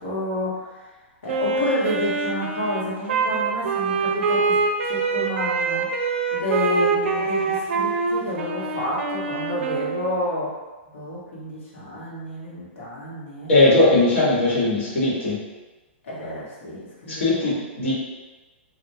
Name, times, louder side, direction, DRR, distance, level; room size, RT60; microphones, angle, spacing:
voice 1, 0.0-0.8 1.2-5.8 6.3-10.5 10.9-13.5 16.0-17.5, left 1 dB, 85° left, -6 dB, 1.2 m, -30 dB
Wind instrument woodwind instrument, 1.3-10.3, right 4 dB, 80° right, 0.4 m, -24 dB
voice 2, 13.5-15.4 17.1-17.9, left 2 dB, 70° left, -6 dB, 1.3 m, -19 dB
3.3 x 2.4 x 2.7 m, 1.2 s
hypercardioid pair, 150°, 7 cm